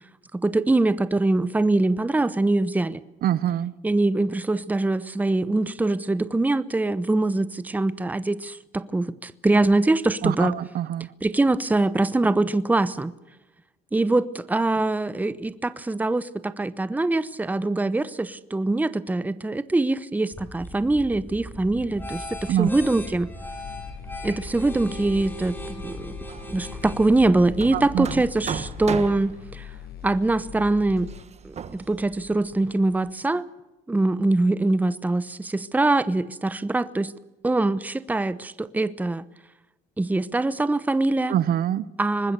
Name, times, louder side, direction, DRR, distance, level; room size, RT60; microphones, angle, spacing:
voice 1, 0.3-3.0 3.8-10.5 11.2-13.1 13.9-23.3 24.2-26.1 26.5-29.7 30.0-31.1 31.4-33.5 33.9-37.1 37.4-39.3 40.0-41.3 42.0-42.3, right 2 dB, 10° right, 16 dB, 0.9 m, -23 dB
voice 2, 3.2-3.7 10.2-11.1 22.5-22.7 27.7-28.1 41.3-41.8, right 11 dB, 60° right, 18 dB, 1.0 m, -24 dB
sound 1, 20.3-29.1, equal, 10° left, 4.6 m, -39 dB
sound 2, 23.4-31.2, left 12 dB, 70° left, 1.4 m, -42 dB
Hammer, 26.2-33.1, right 7 dB, 40° right, 1.5 m, -38 dB
24.5 x 20.0 x 6.8 m, 1.0 s
cardioid pair, 110°, 17 cm